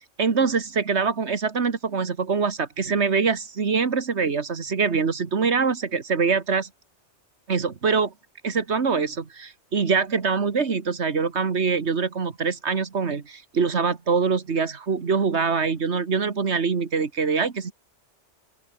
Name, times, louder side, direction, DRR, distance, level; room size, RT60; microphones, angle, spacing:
voice 1, 0.2-6.7 7.5-8.1 8.4-17.7, right 5 dB, 70° right, 1.9 m, -24 dB
open air
omnidirectional pair, 1.2 m